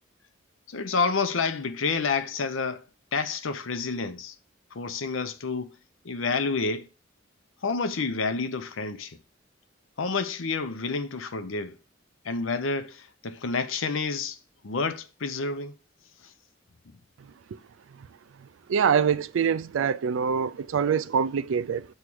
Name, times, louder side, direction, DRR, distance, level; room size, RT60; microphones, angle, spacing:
voice 1, 0.7-2.8 3.1-4.3 4.7-5.7 6.0-6.9 7.6-9.2 10.0-11.8 12.2-14.4 14.6-15.7, left 4 dB, 80° left, 0.7 m, -29 dB
voice 2, 18.7-21.9, right 7 dB, 75° right, 0.4 m, -24 dB
7.1 x 3.2 x 6.2 m
head